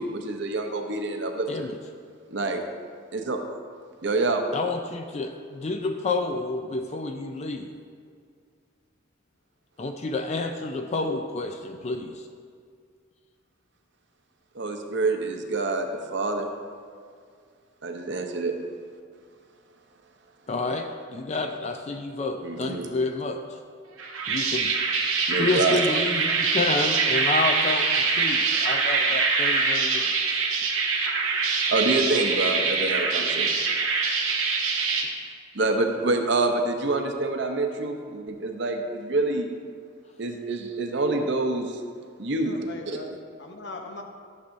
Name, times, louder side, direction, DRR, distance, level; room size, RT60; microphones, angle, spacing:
voice 1, 0.0-1.7 2.3-2.6 3.1-3.4 4.0-4.4 14.5-16.5 17.8-18.6 22.4-22.9 25.3-25.8 31.7-33.5 35.5-39.5 40.2-41.8 42.2-43.0, right 2 dB, 60° right, 4 dB, 0.7 m, -27 dB
voice 2, 1.5-1.8 4.5-7.7 9.8-12.2 20.5-20.9 21.1-23.4 24.3-24.7 25.4-30.1, left 3 dB, 35° left, 5 dB, 0.3 m, -29 dB
sound 1, 24.0-35.0, right 4 dB, 90° right, 1.1 m, -24 dB
voice 3, 42.4-44.0, left 2 dB, 55° left, 3 dB, 0.8 m, -40 dB
11.5 x 6.7 x 2.6 m, 2.1 s
head